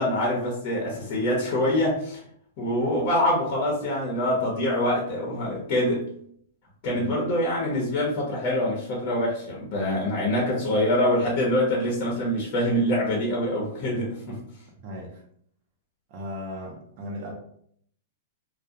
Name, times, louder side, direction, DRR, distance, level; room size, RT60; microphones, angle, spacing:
voice 1, 0.0-2.2 2.6-6.0 6.8-14.4, left 1 dB, 45° left, -3 dB, 0.8 m, -25 dB
voice 2, 14.8-15.2 16.1-17.3, left 1 dB, 50° right, 1 dB, 0.6 m, -36 dB
2.3 x 2.1 x 2.7 m, 0.65 s
hypercardioid pair, 135°, 0 cm